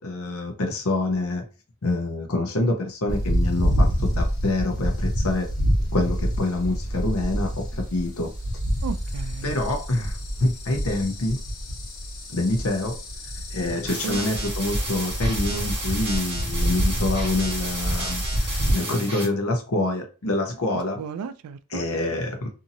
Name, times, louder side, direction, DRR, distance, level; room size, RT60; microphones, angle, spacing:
voice 1, 0.0-1.4 1.8-5.5 5.9-8.3 9.4-11.4 12.3-13.0 13.5-21.0 21.7-22.5, left 2 dB, 70° left, 0.8 m, -26 dB
sound 1, 3.1-18.7, equal, 90° left, 1.2 m, -27 dB
voice 2, 8.8-9.5 13.7-14.2 21.0-21.8, right 6 dB, 85° right, 0.3 m, -34 dB
sound 2, 13.9-19.2, right 2 dB, 25° right, 1.1 m, -33 dB
2.7 x 2.7 x 2.6 m
head